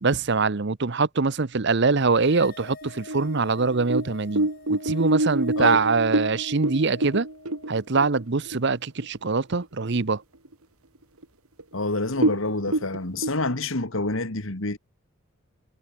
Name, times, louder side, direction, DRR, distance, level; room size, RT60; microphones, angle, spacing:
voice 1, 0.0-7.3 7.7-10.2, right 4 dB, 55° right, 0.8 m, -23 dB
sound 1, 2.1-8.7, left 3 dB, 45° left, 5.6 m, -47 dB
sound 2, 2.8-8.7 9.0-9.1 9.5-10.0 10.5-10.6 11.2-11.3 11.6-11.7 12.1-13.3, right 2 dB, 85° right, 3.0 m, -27 dB
voice 2, 11.7-14.8, left 2 dB, 65° left, 2.2 m, -27 dB
head